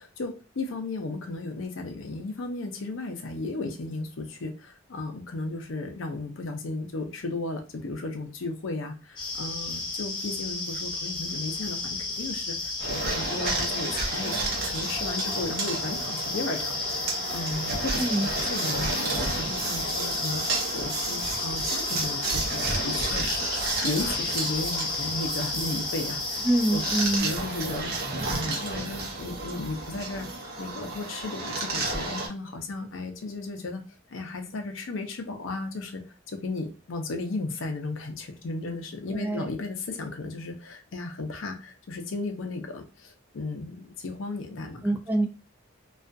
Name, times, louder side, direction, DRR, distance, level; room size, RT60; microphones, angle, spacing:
voice 1, 0.0-26.4 26.7-26.8 27.1-30.3 30.6-33.8 34.1-36.0 36.3-44.8, left 2 dB, 80° left, 5 dB, 0.5 m, -35 dB
sound 1, 9.2-27.2, left 3 dB, 25° left, 0.6 m, -33 dB
sound 2, 12.8-32.3, right 2 dB, 50° right, 0.7 m, -32 dB
voice 2, 26.4-27.3 39.1-39.5 44.8-45.3, right 1 dB, 10° right, 3 dB, 0.3 m, -25 dB
2.3 x 2.3 x 2.6 m, 0.32 s
head